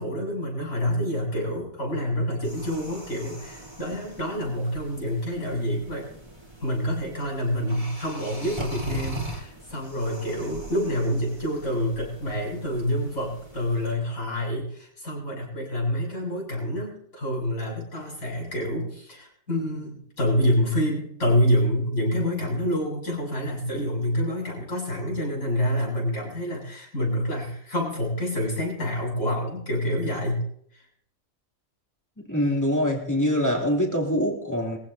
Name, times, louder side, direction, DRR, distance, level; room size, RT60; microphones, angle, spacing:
voice 1, 0.0-6.1 6.6-30.4 30.7-30.8, equal, 75° left, -3 dB, 8.0 m, -27 dB
sound 1, 2.4-13.9, equal, 25° right, 3.2 m, -40 dB
voice 2, 32.3-34.8, equal, 10° left, -1 dB, 2.9 m, -24 dB
23.0 x 16.0 x 2.8 m, 0.66 s
omnidirectional pair, 1.5 m